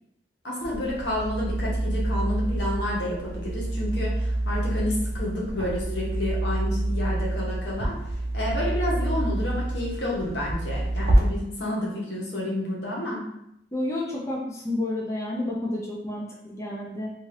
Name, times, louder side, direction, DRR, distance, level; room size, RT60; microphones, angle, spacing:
voice 1, 0.4-7.9 8.3-13.3, left 1 dB, 80° left, -4 dB, 0.9 m, -30 dB
sound 1, 0.6-11.2, right 1 dB, 60° right, 0.6 m, -27 dB
voice 2, 13.7-17.1, left 1 dB, 15° left, -3 dB, 0.4 m, -30 dB
2.6 x 2.4 x 3.2 m, 0.80 s
head